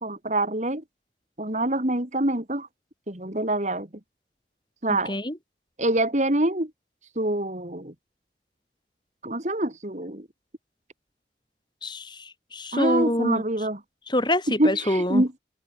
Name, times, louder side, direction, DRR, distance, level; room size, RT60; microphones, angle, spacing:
voice 1, 0.0-0.8 1.4-2.7 3.1-3.9 4.8-5.1 5.8-6.7 7.2-7.9 9.2-10.3 12.7-13.8 14.6-15.3, right 1 dB, 40° right, 2.7 m, -25 dB
voice 2, 11.8-13.4 14.1-15.2, left 1 dB, 25° left, 6.7 m, -26 dB
open air
head